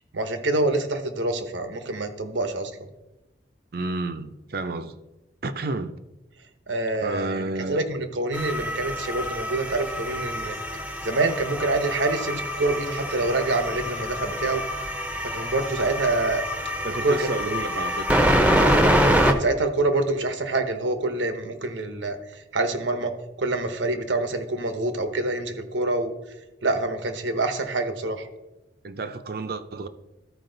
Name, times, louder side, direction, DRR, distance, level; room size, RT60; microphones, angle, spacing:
voice 1, 0.1-2.7 6.7-10.5 11.0-14.6 15.3-16.4 17.0-17.3 18.5-18.7 19.3-22.2 22.5-23.1 23.4-26.1 26.6-28.3, right 2 dB, 85° right, 0.9 m, -26 dB
voice 2, 3.7-5.0 5.4-6.0 7.0-7.8 16.8-18.2 28.8-29.9, right 2 dB, 55° right, 0.6 m, -30 dB
sound 1, 8.3-19.3, equal, 5° right, 0.6 m, -25 dB
13.0 x 4.8 x 3.8 m
head